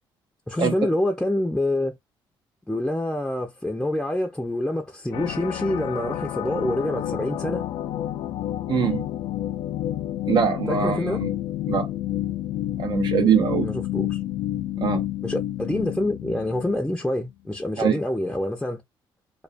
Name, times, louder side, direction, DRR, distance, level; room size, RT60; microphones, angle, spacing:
voice 1, 0.5-2.0 2.7-7.7 10.7-11.2 13.6-14.2 15.2-18.8, left 1 dB, 5° left, 0.5 m, -26 dB
sound 1, 5.1-16.9, left 12 dB, 80° left, 0.4 m, -29 dB
voice 2, 8.7-9.1 10.3-11.3 11.7-11.9 12.8-13.7 14.8-15.0 17.8-18.0, right 7 dB, 55° right, 0.4 m, -23 dB
2.3 x 2.3 x 2.5 m
cardioid pair, 115°, 9 cm